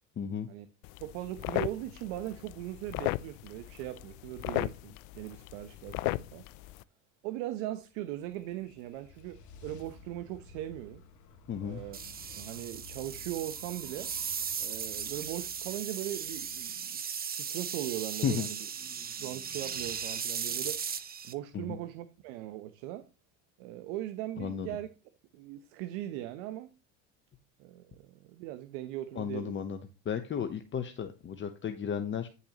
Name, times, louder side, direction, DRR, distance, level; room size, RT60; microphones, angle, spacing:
voice 1, 0.2-0.5 11.5-11.8 18.2-18.5 21.5-21.8 24.4-24.7 29.1-29.8 30.0-32.3, left 7 dB, 30° left, 1.0 m, -33 dB
sound 1, 0.8-6.8, left 20 dB, 65° left, 0.6 m, -36 dB
voice 2, 1.0-6.4 7.2-11.0 11.6-12.0 12.3-14.1 14.6-18.7 19.0-23.1 23.6-24.9 25.3-26.7 27.6-29.5, right 14 dB, 75° right, 1.0 m, -39 dB
sound 2, 7.9-17.2, left 4 dB, 50° left, 2.0 m, -54 dB
sound 3, 11.9-21.3, right 7 dB, 25° right, 0.9 m, -37 dB
10.0 x 6.8 x 3.0 m
supercardioid pair, 100°, 37 cm